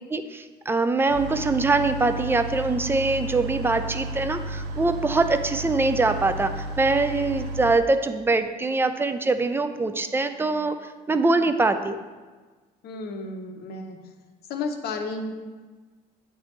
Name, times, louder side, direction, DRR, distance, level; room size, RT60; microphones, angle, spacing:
voice 1, 0.1-10.8 11.1-12.0, right 3 dB, 15° right, 9 dB, 0.3 m, -23 dB
sound 1, 1.1-7.8, right 1 dB, 90° right, 0.6 m, -33 dB
voice 2, 12.8-14.0 14.5-15.3, left 3 dB, 70° left, 4 dB, 0.8 m, -32 dB
9.1 x 3.3 x 3.1 m, 1.4 s
cardioid pair, 110°, 17 cm